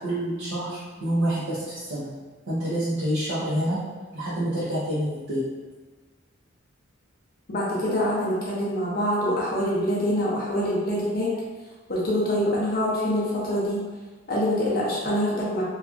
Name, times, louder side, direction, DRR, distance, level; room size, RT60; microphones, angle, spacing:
voice 1, 0.0-2.1 2.5-3.8 4.1-5.5, equal, 75° right, -11 dB, 0.7 m, -27 dB
voice 2, 7.5-11.3 11.9-13.8 14.3-15.6, equal, 45° left, -6 dB, 0.6 m, -25 dB
2.8 x 2.3 x 2.4 m, 1.4 s
head